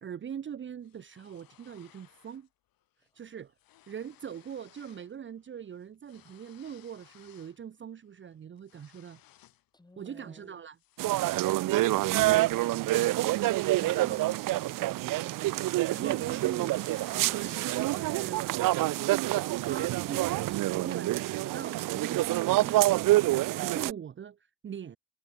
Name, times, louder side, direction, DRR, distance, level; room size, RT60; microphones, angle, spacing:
voice 1, 0.0-2.5 3.1-3.5 3.9-9.2 10.0-10.8 13.7-14.3 15.9-16.8 17.0-18.4 19.6-23.0 23.4-25.0, right 8 dB, 35° right, 1.0 m, -42 dB
sound 1, 0.8-2.5 2.8-3.1 3.3-5.1 5.4-7.6 8.0-9.7 10.1-10.3 10.8-15.3 15.7-18.4, left 13 dB, 80° left, 5.2 m, -59 dB
voice 2, 9.7-10.6 11.9-13.0 13.8-15.6, left 2 dB, 10° left, 3.8 m, -57 dB
sound 2, 11.0-23.9, right 17 dB, 65° right, 0.5 m, -27 dB
cardioid pair, 150°, 34 cm